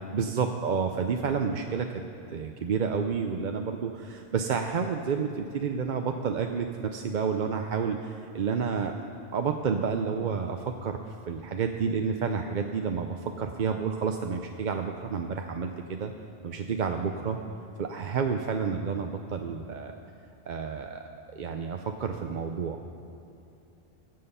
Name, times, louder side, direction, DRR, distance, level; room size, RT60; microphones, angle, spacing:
voice 1, 0.1-1.9 2.3-9.1 9.3-16.1 16.4-17.4 17.8-20.0 20.5-21.0 21.3-22.8, right 6 dB, 55° right, 5 dB, 0.7 m, -30 dB
22.0 x 7.6 x 5.5 m, 2.8 s
omnidirectional pair, 1.1 m